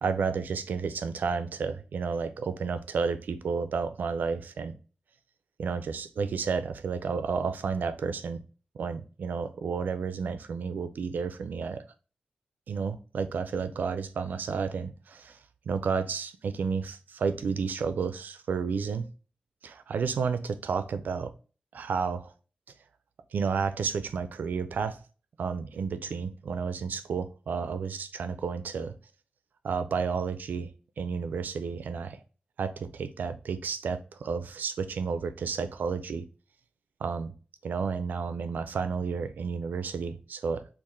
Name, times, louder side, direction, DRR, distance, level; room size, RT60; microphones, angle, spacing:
voice 1, 0.0-4.7 5.6-8.4 8.7-11.8 12.7-15.4 15.7-19.1 19.6-21.3 21.7-22.3 23.3-25.0 25.4-28.9 29.6-30.7 31.0-32.2 32.6-36.2 37.0-37.3 37.6-40.7, right 5 dB, 90° right, 0.4 m, -31 dB
3.7 x 2.4 x 3.1 m
wide cardioid pair, 105°, 3 cm